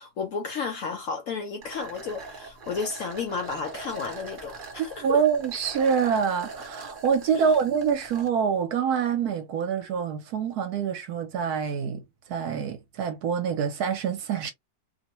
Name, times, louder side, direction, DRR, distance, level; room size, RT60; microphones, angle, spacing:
voice 1, 0.0-5.2 7.3-7.4, left 5 dB, 65° left, 0.8 m, -32 dB
sound 1, 1.6-8.3, right 3 dB, 50° right, 0.6 m, -42 dB
voice 2, 4.8-12.0 12.3-14.5, right 7 dB, 70° right, 1.1 m, -26 dB
2.8 x 2.1 x 2.9 m
omnidirectional pair, 1.9 m